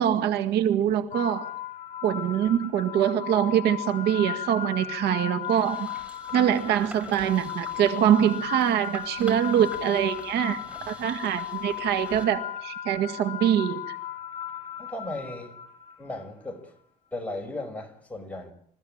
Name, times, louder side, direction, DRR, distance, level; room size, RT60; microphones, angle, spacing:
voice 1, 0.0-1.5 2.0-5.9 6.3-10.6 10.9-14.0, right 10 dB, 80° right, 1.9 m, -24 dB
sound 1, 1.1-16.2, left 11 dB, 35° left, 4.7 m, -36 dB
sound 2, 5.4-12.2, equal, 5° right, 5.9 m, -45 dB
voice 2, 14.8-15.6 16.0-16.7 17.1-18.5, left 2 dB, 10° left, 5.2 m, -36 dB
26.5 x 15.5 x 8.7 m
cardioid pair, 110°, 17 cm